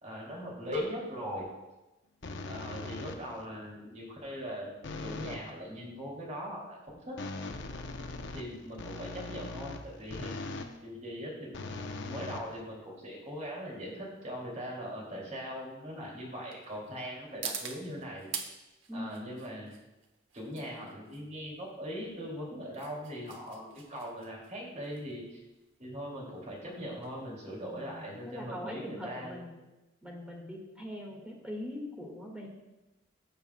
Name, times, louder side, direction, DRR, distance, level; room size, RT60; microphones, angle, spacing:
voice 1, 0.0-1.5 2.5-4.7 5.0-6.8 7.1-7.2 8.3-10.3 10.8-18.3 18.9-19.7 20.3-25.4 25.8-29.4, equal, 40° right, -3 dB, 2.5 m, -40 dB
sound 1, 2.2-3.4 4.8-5.5 7.2-10.8 11.5-13.0, left 3 dB, 65° left, 0.7 m, -40 dB
sound 2, 11.8-28.5, right 6 dB, 75° right, 0.9 m, -47 dB
voice 2, 18.9-19.3 27.6-29.6 30.0-32.5, left 1 dB, 5° right, -1 dB, 1.7 m, -42 dB
15.0 x 6.9 x 2.2 m, 1.0 s
head